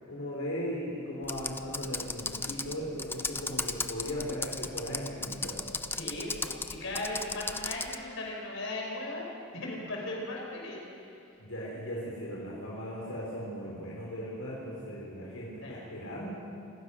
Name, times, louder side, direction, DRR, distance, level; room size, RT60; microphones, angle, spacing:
voice 1, 0.1-5.8 11.4-16.3, equal, 85° left, -4 dB, 3.9 m, -38 dB
Computer keyboard, 1.2-8.0, left 3 dB, 10° left, 0.6 m, -36 dB
voice 2, 6.0-9.3 9.5-11.0 15.6-15.9, left 2 dB, 65° left, -1 dB, 5.6 m, -37 dB
27.5 x 15.5 x 6.4 m, 2.6 s
head